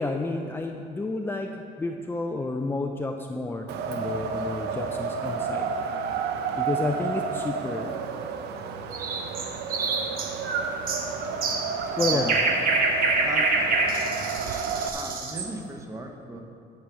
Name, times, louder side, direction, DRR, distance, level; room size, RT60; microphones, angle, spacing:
voice 1, 0.0-1.5 1.8-5.7 6.6-8.0 12.0-12.4, left 2 dB, 15° left, 3 dB, 0.4 m, -30 dB
Wind, 3.7-14.9, right 5 dB, 75° right, 0.7 m, -31 dB
sound 1, 8.9-15.5, right 3 dB, 60° right, 1.2 m, -26 dB
voice 2, 12.1-12.4 13.2-13.5 14.0-14.1 14.5-16.4, right 2 dB, 20° right, 3 dB, 1.0 m, -38 dB
9.5 x 4.8 x 6.8 m, 2.6 s
cardioid pair, 110°, 17 cm